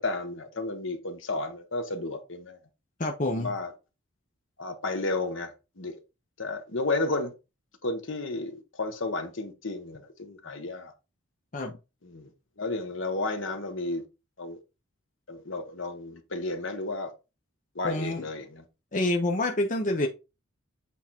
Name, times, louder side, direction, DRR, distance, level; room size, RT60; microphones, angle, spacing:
voice 1, 0.0-2.6 3.3-3.7 4.6-6.0 6.4-7.3 7.8-10.9 12.0-12.3 12.6-14.0 14.4-14.6 15.3-17.1 17.7-18.6, left 2 dB, 65° left, 1.4 m, -32 dB
voice 2, 3.0-3.5 11.5-11.7 17.8-18.2 18.9-20.1, left 2 dB, 35° left, 0.8 m, -27 dB
8.4 x 3.8 x 4.3 m
head